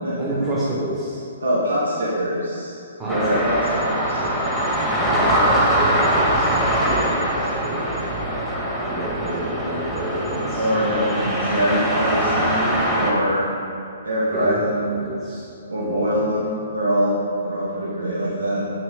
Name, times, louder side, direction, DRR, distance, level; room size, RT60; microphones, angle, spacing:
voice 1, 0.2-1.2 3.0-3.4 4.9-8.1 8.9-10.7 14.3-15.5 15.8-16.5, right 1 dB, 15° right, -9 dB, 1.6 m, -29 dB
voice 2, 1.4-2.7 3.0-4.2 10.5-13.4 14.0-15.0 15.7-18.6, equal, 85° right, -6 dB, 1.6 m, -23 dB
sound 1, 3.1-13.1, right 1 dB, ahead, 1.4 m, -22 dB
8.1 x 6.1 x 3.7 m, 2.6 s
hypercardioid pair, 135°, 0 cm